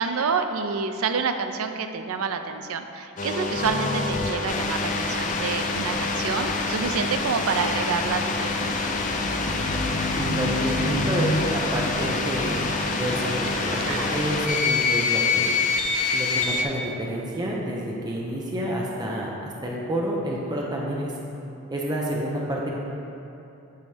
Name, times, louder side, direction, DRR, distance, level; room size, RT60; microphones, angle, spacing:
voice 1, 0.0-8.7 13.8-14.1, right 5 dB, 75° right, 7 dB, 0.4 m, -28 dB
sound 1, 3.2-16.6, left 4 dB, 35° left, 0.4 m, -26 dB
sound 2, 8.7-13.8, equal, 50° left, 1.2 m, -31 dB
voice 2, 10.1-15.6 16.1-21.1 21.7-22.7, equal, 20° right, -3 dB, 0.6 m, -29 dB
10.5 x 4.1 x 3.3 m, 2.9 s
head